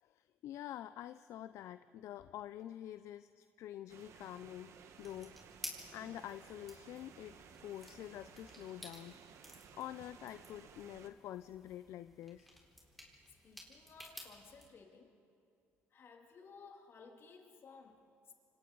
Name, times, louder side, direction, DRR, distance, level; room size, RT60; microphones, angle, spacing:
voice 1, 0.0-5.4 5.9-9.2 9.7-12.5, left 12 dB, 70° left, 12 dB, 0.5 m, -47 dB
sound 1, 3.9-11.1, right 7 dB, 65° right, 1.3 m, -58 dB
sound 2, 5.0-14.7, equal, ahead, 4.2 m, -54 dB
voice 2, 13.4-15.2 15.9-18.3, left 5 dB, 50° left, 2 dB, 2.7 m, -57 dB
27.0 x 24.5 x 3.9 m, 2.5 s
cardioid pair, 85°, 5 cm